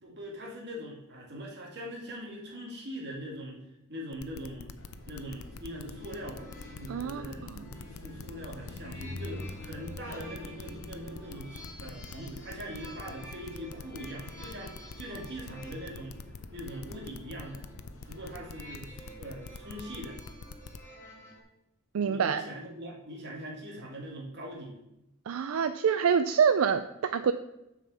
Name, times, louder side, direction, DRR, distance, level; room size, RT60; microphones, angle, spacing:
voice 1, 0.0-3.6 3.9-4.8 5.1-16.1 16.5-17.6 18.1-20.2 22.0-24.8, equal, 55° right, -1 dB, 2.1 m, -42 dB
sound 1, 4.1-20.8, left 5 dB, 90° left, 0.5 m, -45 dB
Car passing by, 4.8-19.7, left 2 dB, 70° left, 0.9 m, -48 dB
sound 2, 4.8-21.4, equal, 15° left, 2.6 m, -52 dB
voice 2, 6.9-7.6 21.9-22.4 25.3-27.3, right 7 dB, 80° right, 10 dB, 0.4 m, -26 dB
6.9 x 4.9 x 6.9 m, 0.89 s
head